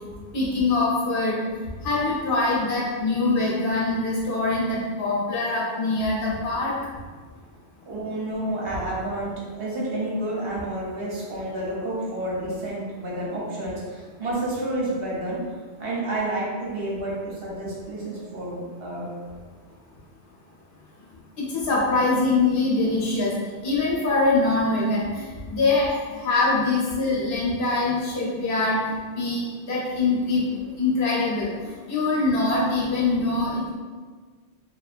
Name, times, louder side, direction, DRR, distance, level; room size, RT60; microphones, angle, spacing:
voice 1, 0.3-1.4 1.8-6.7 21.4-23.3 23.6-25.9 26.2-28.8 29.2-30.5 30.8-33.7, left 3 dB, 55° left, -5 dB, 0.9 m, -23 dB
voice 2, 7.9-15.4 15.8-19.1, right 1 dB, 60° right, -5 dB, 0.9 m, -30 dB
2.6 x 2.3 x 2.4 m, 1.5 s
omnidirectional pair, 1.1 m